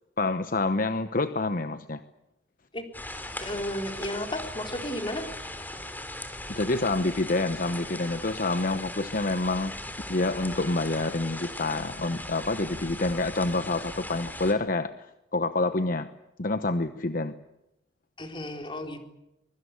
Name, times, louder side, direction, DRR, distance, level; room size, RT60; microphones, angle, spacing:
voice 1, 0.2-2.0 6.5-9.8 10.1-16.1 16.4-17.4, left 2 dB, 50° left, 10 dB, 1.0 m, -27 dB
sound 1, 2.9-14.5, left 1 dB, 10° left, 3.3 m, -39 dB
voice 2, 3.4-5.3 18.2-19.0, left 1 dB, 30° left, 4 dB, 4.0 m, -33 dB
24.0 x 23.0 x 8.3 m, 0.89 s
head